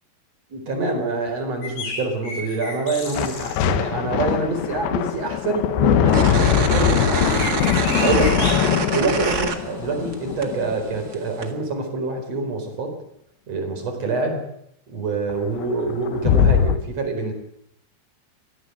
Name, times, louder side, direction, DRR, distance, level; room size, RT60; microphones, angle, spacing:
voice 1, 0.5-7.4 8.0-8.5 8.9-12.9 13.5-14.5 14.9-17.3, right 3 dB, 40° right, 4 dB, 5.3 m, -26 dB
sound 1, 1.6-3.6 7.1-8.5 9.2-9.4, left 3 dB, 50° left, 6.1 m, -32 dB
sound 2, 3.1-11.1 15.3-15.4 15.6-16.8, left 10 dB, 85° left, 3.3 m, -21 dB
sound 3, 6.1-10.1 10.4-11.5, right 4 dB, 65° right, 0.9 m, -25 dB
24.0 x 16.5 x 8.0 m, 0.71 s
omnidirectional pair, 4.9 m